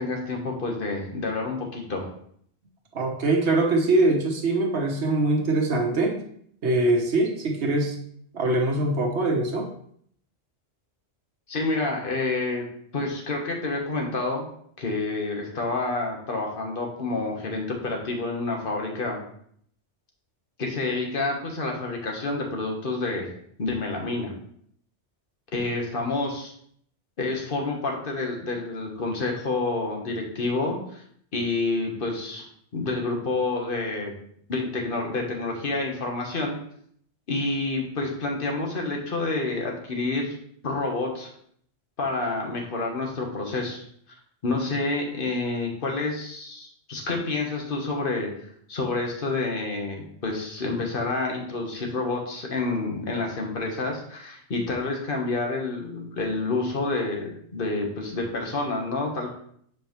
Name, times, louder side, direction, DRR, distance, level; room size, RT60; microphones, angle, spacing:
voice 1, 0.0-2.1 11.5-12.6 12.9-14.5 14.8-19.2 20.6-23.3 23.6-24.3 25.5-26.5 27.2-31.0 31.3-32.4 32.7-34.1 34.5-36.6 37.3-40.4 40.6-41.3 42.0-43.8 44.4-59.3, left 3 dB, 50° left, 1 dB, 1.4 m, -28 dB
voice 2, 2.9-6.2 6.6-8.0 8.3-9.7, right 2 dB, 70° right, 2 dB, 1.3 m, -23 dB
7.4 x 4.8 x 3.1 m, 0.65 s
omnidirectional pair, 1.2 m